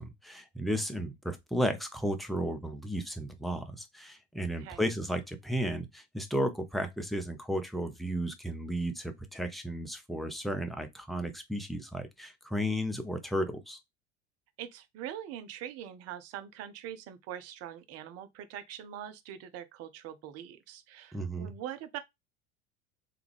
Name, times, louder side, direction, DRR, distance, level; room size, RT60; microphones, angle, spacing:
voice 1, 0.0-13.8 21.1-21.5, equal, ahead, 0.7 m, -34 dB
voice 2, 4.4-4.8 14.6-22.0, right 10 dB, 45° right, 0.7 m, -43 dB
3.4 x 2.4 x 3.3 m
hypercardioid pair, 75°, 34 cm